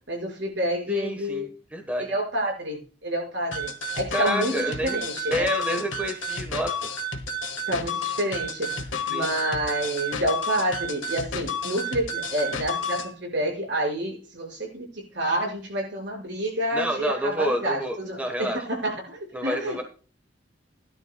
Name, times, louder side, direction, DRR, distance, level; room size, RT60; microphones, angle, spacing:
voice 1, 0.1-1.5 2.0-5.8 7.7-19.8, right 1 dB, 70° right, 5.6 m, -29 dB
voice 2, 0.9-2.1 4.1-5.0 5.3-6.9 9.1-9.3 16.7-18.6 19.3-19.8, equal, 10° right, 1.2 m, -29 dB
sound 1, 3.5-13.1, left 2 dB, 90° left, 1.6 m, -31 dB
16.5 x 11.5 x 2.3 m
head